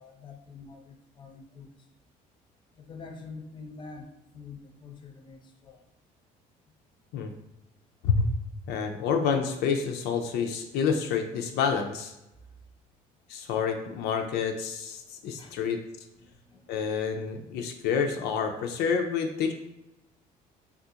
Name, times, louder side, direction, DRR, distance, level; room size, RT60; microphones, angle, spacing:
voice 1, 0.0-1.7 2.7-5.8 15.3-15.5 16.1-17.0, left 4 dB, 30° left, 4 dB, 0.5 m, -46 dB
voice 2, 8.7-12.1 13.3-15.8 16.7-19.5, left 6 dB, 80° left, 5 dB, 0.4 m, -28 dB
3.6 x 2.4 x 2.7 m, 0.92 s
cardioid pair, 110°, 17 cm